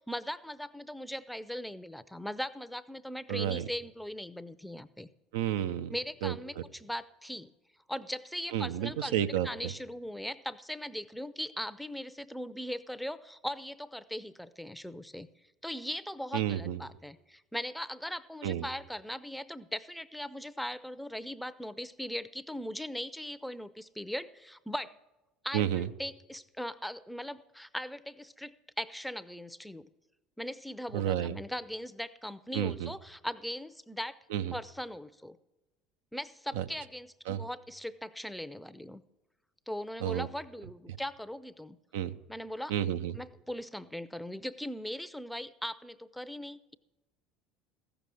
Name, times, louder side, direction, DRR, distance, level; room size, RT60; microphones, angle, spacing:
voice 1, 0.0-5.1 5.9-7.5 7.9-9.2 9.4-15.3 15.6-24.9 25.4-29.9 30.4-34.2 34.5-35.4 36.1-39.0 39.7-41.8 42.3-42.7 43.2-46.7, equal, ahead, 15 dB, 0.6 m, -39 dB
voice 2, 3.3-3.7 5.3-5.9 6.2-6.6 8.5-9.7 16.3-16.8 18.4-18.7 25.5-25.9 30.9-31.4 32.5-32.9 34.3-34.5 36.5-36.6 37.3-37.4 40.0-40.3 41.9-42.1 42.7-43.1, right 11 dB, 70° right, 10 dB, 0.5 m, -31 dB
14.5 x 6.9 x 7.8 m, 1.0 s
hypercardioid pair, 70°, 0 cm